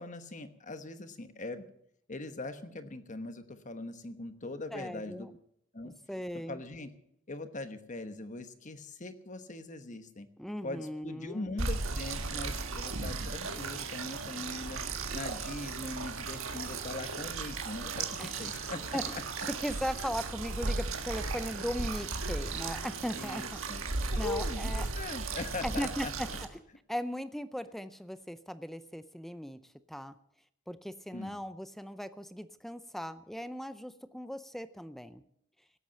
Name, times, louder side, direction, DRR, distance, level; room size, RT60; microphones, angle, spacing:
voice 1, 0.0-1.7 2.1-5.3 5.7-5.9 6.5-6.9 7.3-10.3 10.6-14.8 15.1-19.2 23.2-23.8 24.1-26.1 31.1-31.4, left 2 dB, 40° left, 9 dB, 1.2 m, -41 dB
voice 2, 4.7-5.3 5.8-6.6 10.4-11.5 18.2-18.3 18.9-19.1 19.6-23.6 24.1-24.9 25.6-26.5 26.9-29.6 29.9-30.1 30.7-35.2, equal, ahead, 12 dB, 0.5 m, -38 dB
sound 1, 11.6-26.5, right 3 dB, 85° right, 1.5 m, -36 dB
17.0 x 8.3 x 7.5 m, 0.73 s
head